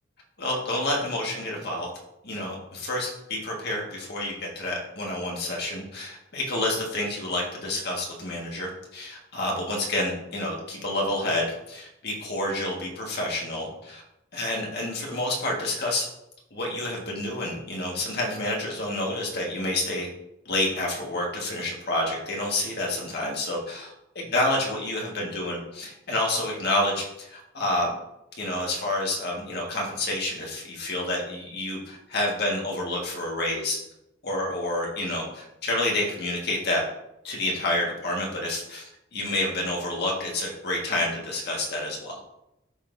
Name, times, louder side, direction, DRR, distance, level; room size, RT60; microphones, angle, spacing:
voice 1, 0.4-1.9 2.2-14.0 14.3-16.1 16.5-20.1 20.5-27.9 28.4-33.8 34.2-36.8 37.2-38.8 39.1-42.2, left 1 dB, 55° left, -2 dB, 1.7 m, -29 dB
11.5 x 4.0 x 2.7 m, 0.86 s
head